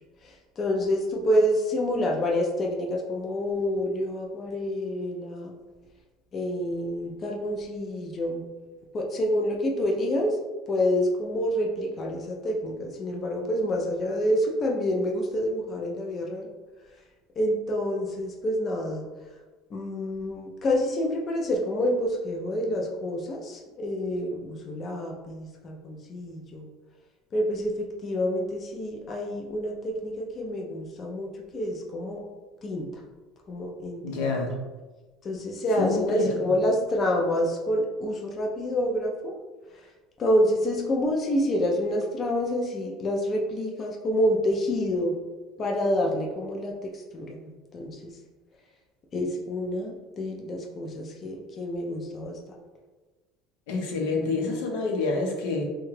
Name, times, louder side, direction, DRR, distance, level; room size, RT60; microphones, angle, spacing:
voice 1, 0.2-5.5 6.3-8.4 8.9-10.4 10.7-16.5 17.4-19.1 19.7-26.7 27.3-32.2 32.6-32.9 33.5-34.3 35.2-39.4 40.2-45.1 45.6-48.2 49.1-52.4, equal, 30° left, 1 dB, 0.4 m, -28 dB
voice 2, 34.0-34.5 35.8-36.5 53.7-55.6, left 3 dB, 90° left, 1 dB, 0.7 m, -28 dB
3.6 x 2.2 x 3.1 m, 1.3 s
cardioid pair, 150°, 0 cm